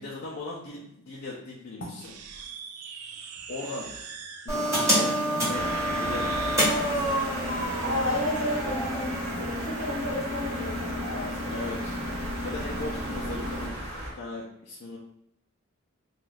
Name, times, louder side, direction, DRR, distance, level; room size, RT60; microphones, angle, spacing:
voice 1, 0.0-2.1 3.5-3.9 4.4-5.7 6.0-7.2 11.5-12.0 12.4-13.8 14.1-15.0, left 2 dB, 50° left, -5 dB, 0.4 m, -38 dB
sound 1, 2.0-6.7, right 6 dB, 85° right, 0.3 m, -43 dB
sound 2, 4.5-13.7, equal, 15° right, 0.9 m, -29 dB
sound 3, 5.5-14.1, right 1 dB, 50° right, 0.7 m, -36 dB
voice 2, 7.8-11.5, left 1 dB, 65° left, -2 dB, 1.0 m, -32 dB
2.6 x 2.3 x 3.2 m, 0.79 s
head